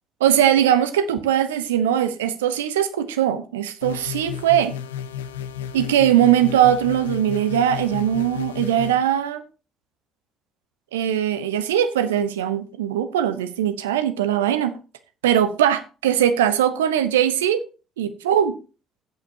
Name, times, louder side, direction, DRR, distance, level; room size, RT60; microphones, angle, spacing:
voice 1, 0.2-4.7 5.7-9.4 10.9-14.7 15.2-17.6 18.0-18.6, right 10 dB, 75° right, 0.8 m, -20 dB
sound 1, 3.8-9.0, left 9 dB, 75° left, 0.7 m, -33 dB
16.0 x 8.4 x 2.8 m
figure-of-eight pair, 50°, 0 cm